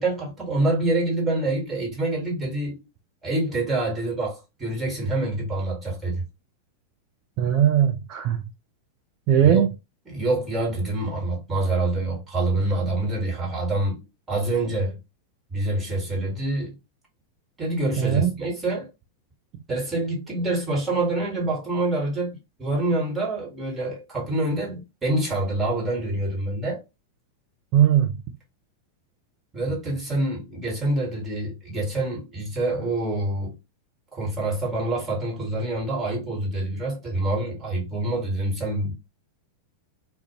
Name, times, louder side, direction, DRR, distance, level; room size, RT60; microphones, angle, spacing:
voice 1, 0.0-2.8 3.2-6.2 7.4-7.5 9.4-9.6 10.1-15.0 15.5-16.8 17.6-18.9 19.7-26.8 29.5-33.6 34.1-38.9, right 2 dB, 15° right, 1.4 m, -26 dB
voice 2, 7.4-8.4 9.3-9.7 18.0-18.3 27.7-28.2, right 10 dB, 45° right, 0.4 m, -19 dB
2.5 x 2.1 x 2.8 m
figure-of-eight pair, 95°, 0 cm